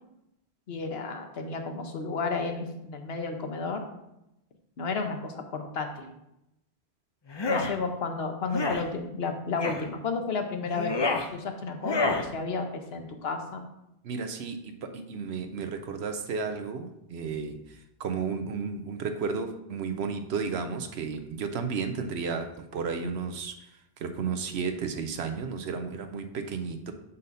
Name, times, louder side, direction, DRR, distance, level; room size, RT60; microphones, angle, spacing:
voice 1, 0.7-3.9 4.8-6.1 7.5-13.6, left 4 dB, 70° left, 5 dB, 1.1 m, -32 dB
sound 1, 7.3-7.7 8.5-8.8 9.6-9.9 10.7-11.3 11.8-12.3, left 3 dB, 35° left, 0.5 m, -28 dB
voice 2, 14.0-23.7 24.0-26.9, right 5 dB, 75° right, 7 dB, 0.9 m, -33 dB
6.5 x 5.5 x 4.1 m, 0.85 s
omnidirectional pair, 1.1 m